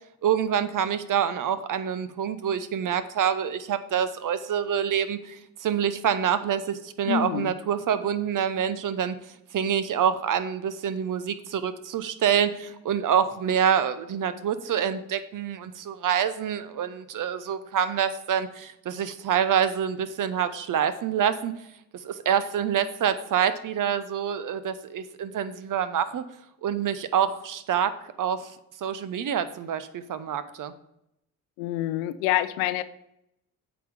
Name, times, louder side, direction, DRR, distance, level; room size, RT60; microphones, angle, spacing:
voice 1, 0.2-9.2 9.5-21.5 22.0-26.2 26.6-28.5 28.8-30.7, right 8 dB, 50° right, 13 dB, 0.8 m, -26 dB
voice 2, 7.1-7.5 31.6-32.8, left 12 dB, 85° left, 14 dB, 0.6 m, -26 dB
8.3 x 4.1 x 6.6 m, 0.81 s
hypercardioid pair, 45°, 41 cm